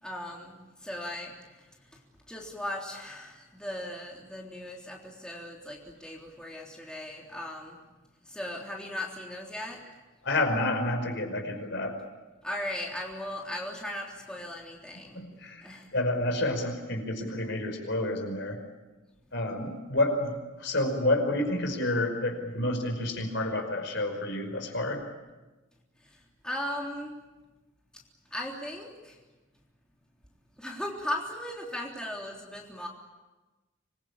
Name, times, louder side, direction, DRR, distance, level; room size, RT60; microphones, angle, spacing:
voice 1, 0.0-2.0 2.3-7.8 8.3-9.8 12.4-15.2 15.6-15.9 26.0-27.2 28.3-29.2 30.6-32.9, left 1 dB, 5° left, -2 dB, 3.5 m, -38 dB
voice 2, 10.2-12.0 15.1-18.6 19.3-25.0, left 1 dB, 60° left, 5 dB, 5.4 m, -29 dB
26.0 x 22.5 x 8.6 m, 1.1 s
head